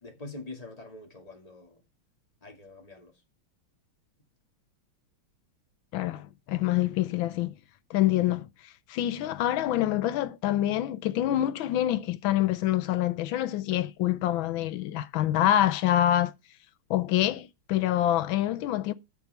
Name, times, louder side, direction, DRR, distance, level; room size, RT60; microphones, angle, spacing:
voice 1, 0.0-1.8 2.4-3.1, left 2 dB, 20° left, 2.1 m, -44 dB
voice 2, 5.9-7.5 7.9-8.5 8.9-16.3 16.9-18.9, left 13 dB, 75° left, 1.4 m, -26 dB
9.1 x 5.9 x 5.5 m
omnidirectional pair, 2.3 m